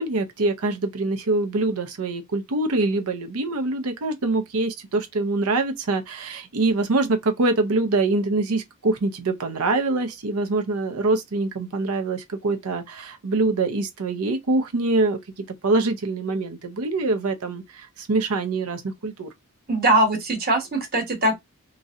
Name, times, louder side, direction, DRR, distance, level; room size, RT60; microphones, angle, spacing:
voice 1, 0.0-19.3, right 3 dB, 80° right, 0.7 m, -24 dB
voice 2, 19.7-21.3, right 1 dB, 45° right, 1.2 m, -21 dB
3.0 x 2.7 x 2.4 m
head